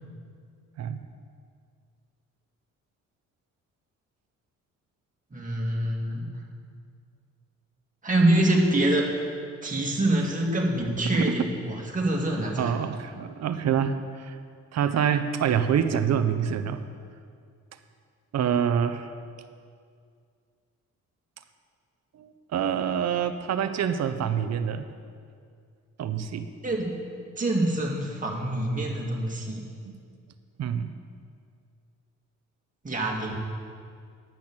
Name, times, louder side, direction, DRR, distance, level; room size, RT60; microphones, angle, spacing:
voice 1, 5.3-6.3 8.0-9.1 9.6-12.8 26.6-27.1 27.4-29.6 32.8-33.3, right 1 dB, 25° right, -1 dB, 2.2 m, -25 dB
voice 2, 10.8-11.2 12.6-14.4 14.7-16.8 18.3-19.1 22.1-24.9 26.0-26.5 29.8-30.0 30.6-30.9, right 8 dB, 60° right, 10 dB, 0.8 m, -26 dB
10.5 x 6.1 x 8.7 m, 2.2 s
cardioid pair, 90°, 30 cm